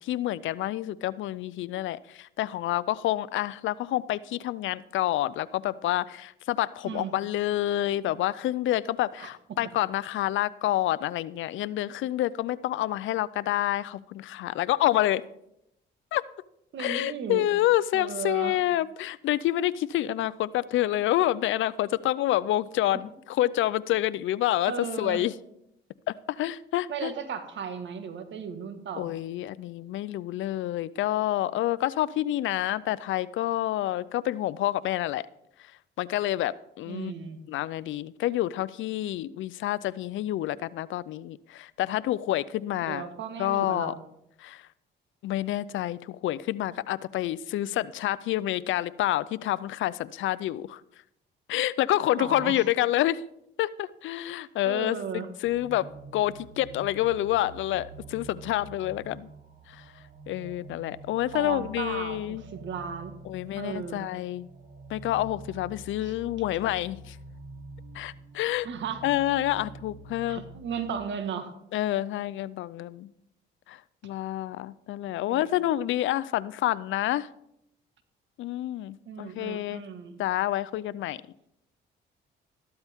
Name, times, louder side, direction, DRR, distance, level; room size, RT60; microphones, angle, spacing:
voice 1, 0.0-15.2 16.1-16.3 16.8-25.3 26.1-27.1 29.0-35.3 36.0-37.1 37.5-43.1 43.4-43.9 44.4-44.6 45.2-50.8 51.5-53.3 53.6-59.3 59.7-59.8 60.3-62.4 63.3-64.5 64.9-67.2 67.9-68.7 69.0-70.4 71.7-73.1 73.7-77.3 78.4-79.8 80.2-81.2, left 14 dB, 75° left, 19 dB, 0.5 m, -28 dB
voice 2, 9.2-9.6 16.7-17.5 17.9-18.6 24.7-25.2 26.9-29.1 36.9-37.4 42.9-44.0 52.2-52.6 54.6-55.3 61.3-63.2 63.6-64.1 66.0-66.1 68.6-69.0 69.5-69.7 70.3-71.5 75.3-75.5 79.0-80.2, right 7 dB, 70° right, 8 dB, 1.6 m, -35 dB
sound 1, 55.4-70.9, right 2 dB, 45° right, 1.5 m, -47 dB
13.5 x 12.5 x 3.6 m, 0.79 s
cardioid pair, 90°, 20 cm